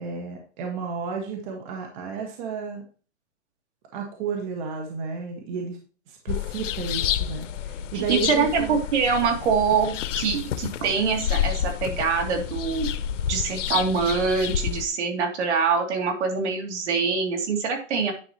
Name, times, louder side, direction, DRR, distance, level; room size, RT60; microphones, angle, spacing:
voice 1, 0.0-2.8 3.9-5.8 6.1-8.8, right 5 dB, 40° right, 2 dB, 1.7 m, -32 dB
sound 1, 6.3-14.9, left 10 dB, 85° left, 0.8 m, -29 dB
voice 2, 7.9-12.9 13.3-18.1, right 5 dB, 70° right, 2 dB, 2.9 m, -24 dB
9.9 x 6.9 x 3.1 m, 0.39 s
supercardioid pair, 160°, 36 cm